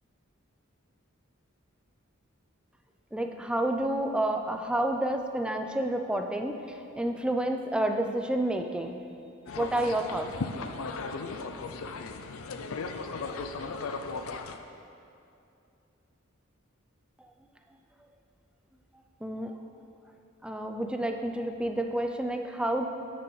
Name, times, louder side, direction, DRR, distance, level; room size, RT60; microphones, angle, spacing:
voice 1, 3.1-6.6 7.0-9.0 9.6-10.5 19.2-19.5 20.4-22.8, right 1 dB, 5° right, 4 dB, 0.5 m, -29 dB
sound 1, 9.5-14.6, left 4 dB, 85° left, 0.5 m, -36 dB
8.9 x 6.2 x 4.7 m, 2.6 s
head